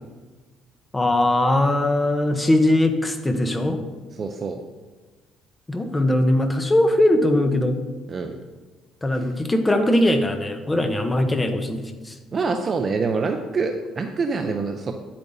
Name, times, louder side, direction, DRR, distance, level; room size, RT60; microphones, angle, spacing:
voice 1, 0.9-3.8 5.7-7.8 9.0-12.1, left 1 dB, 15° left, 6 dB, 0.9 m, -20 dB
voice 2, 4.2-4.6 8.1-8.4 12.3-14.9, right 4 dB, 35° right, 5 dB, 0.6 m, -25 dB
9.5 x 8.6 x 2.7 m, 1.3 s
cardioid pair, 110°, 0 cm